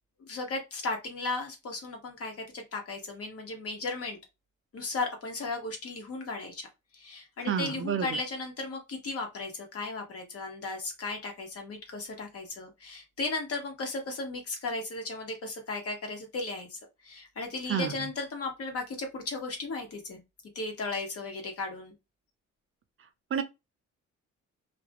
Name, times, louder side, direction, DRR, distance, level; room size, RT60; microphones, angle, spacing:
voice 1, 0.3-4.2 4.7-6.7 6.9-20.2 20.5-21.9, left 3 dB, 50° left, 1.0 m, -35 dB
voice 2, 7.5-8.2 17.7-17.9 23.3-23.4, right 7 dB, 45° right, 0.5 m, -29 dB
2.4 x 2.1 x 2.9 m
cardioid pair, 90°, 30 cm